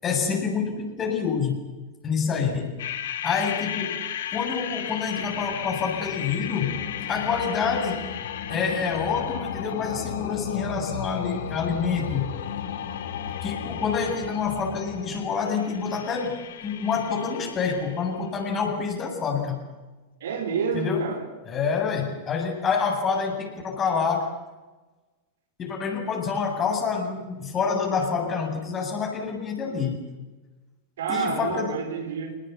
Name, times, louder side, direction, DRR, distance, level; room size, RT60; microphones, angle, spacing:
voice 1, 0.0-1.7 2.0-2.8 3.2-4.0 4.3-6.8 7.1-8.1 8.5-12.4 13.4-19.6 20.7-21.1 21.4-24.3 25.6-30.0 31.1-31.8, left 5 dB, 25° left, 2 dB, 7.9 m, -27 dB
sound 1, 2.8-18.1, left 9 dB, 60° left, 2.4 m, -34 dB
voice 2, 20.2-21.2 31.0-32.4, right 5 dB, 60° right, 7 dB, 4.3 m, -28 dB
28.0 x 20.5 x 8.5 m, 1.2 s
figure-of-eight pair, 90°, 0 cm